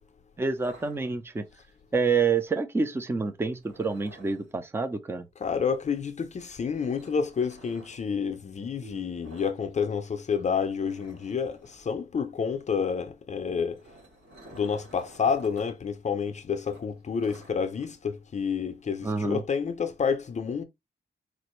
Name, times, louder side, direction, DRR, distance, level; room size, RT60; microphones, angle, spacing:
voice 1, 0.4-1.5 1.9-5.3 19.0-19.4, right 4 dB, 15° right, 0.4 m, -27 dB
sound 1, 0.5-1.6 3.6-4.5 6.7-8.0 9.2-9.6 9.8-10.0 10.3-10.4 10.8-11.9 13.5-15.7 16.1-16.2 16.6-17.9, right 1 dB, 75° right, 2.5 m, -52 dB
voice 2, 5.4-13.8 14.5-20.6, left 6 dB, 40° left, 0.5 m, -29 dB
sound 2, 8.8-11.0, right 7 dB, 45° right, 1.0 m, -54 dB
4.3 x 2.5 x 3.0 m
wide cardioid pair, 180°, 18 cm